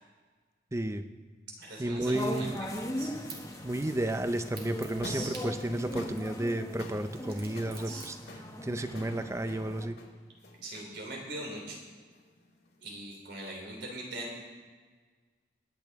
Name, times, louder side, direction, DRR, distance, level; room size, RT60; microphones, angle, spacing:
voice 1, 0.7-1.1 1.8-2.6 3.6-10.0, right 1 dB, 15° right, 10 dB, 0.5 m, -32 dB
voice 2, 1.6-2.5 3.0-3.2 5.0-5.3 7.9-8.1 10.6-11.8 12.8-14.4, right 1 dB, 85° right, -1 dB, 3.4 m, -41 dB
sound 1, 2.0-9.9, left 1 dB, 20° left, 1.1 m, -39 dB
sound 2, 2.0-8.1, right 4 dB, 55° right, 2.5 m, -52 dB
sound 3, 5.0-13.2, left 1 dB, 70° left, 1.8 m, -49 dB
21.5 x 8.6 x 3.6 m, 1.5 s
head